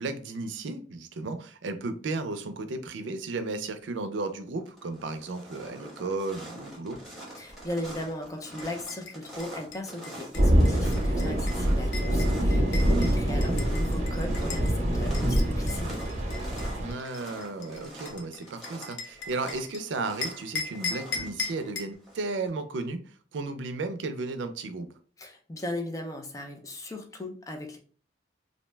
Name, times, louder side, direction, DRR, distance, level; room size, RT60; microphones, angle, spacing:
voice 1, 0.0-7.0 12.8-13.5 16.8-24.9, right 3 dB, 85° right, 9 dB, 0.4 m, -34 dB
sound 1, 3.9-4.3 4.6-22.5, right 1 dB, ahead, 0.9 m, -45 dB
voice 2, 7.4-16.0 25.2-27.8, left 1 dB, 20° left, 3 dB, 0.4 m, -37 dB
sound 2, 8.6-14.7 15.1-19.8 20.2-22.0, left 4 dB, 90° left, 0.6 m, -38 dB
sound 3, 10.3-16.9, equal, 35° right, 0.8 m, -25 dB
2.6 x 2.1 x 3.2 m, 0.42 s
head